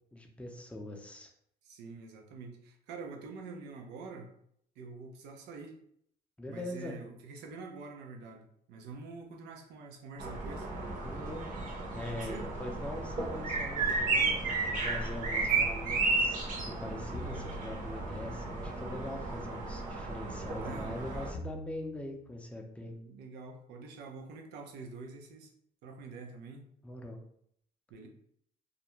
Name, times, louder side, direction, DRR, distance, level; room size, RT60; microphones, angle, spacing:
voice 1, 0.1-1.3 6.4-7.0 11.0-11.4 11.9-16.4 16.7-23.0 26.8-27.2, left 1 dB, 5° left, 2 dB, 0.5 m, -42 dB
voice 2, 1.6-4.3 4.8-5.8 6.5-8.4 8.7-10.7 12.1-12.5 20.5-21.3 22.8-25.5 25.8-26.7 27.9-28.1, right 4 dB, 85° right, 3 dB, 0.6 m, -46 dB
sound 1, 10.2-21.3, right 3 dB, 50° right, 0.8 m, -33 dB
sound 2, 17.1-18.2 21.3-22.3, equal, 70° left, 0.5 m, -46 dB
2.4 x 2.1 x 3.0 m, 0.68 s
cardioid pair, 110°, 17 cm